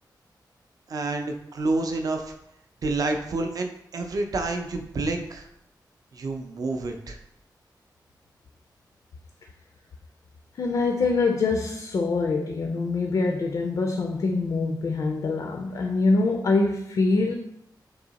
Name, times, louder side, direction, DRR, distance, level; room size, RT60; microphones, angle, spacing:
voice 1, 0.9-2.3 2.8-5.5 6.1-7.2, right 2 dB, 55° right, 5 dB, 0.4 m, -28 dB
voice 2, 10.6-17.3, left 3 dB, 55° left, 3 dB, 0.4 m, -24 dB
3.7 x 2.8 x 3.9 m, 0.77 s
wide cardioid pair, 160°, 8 cm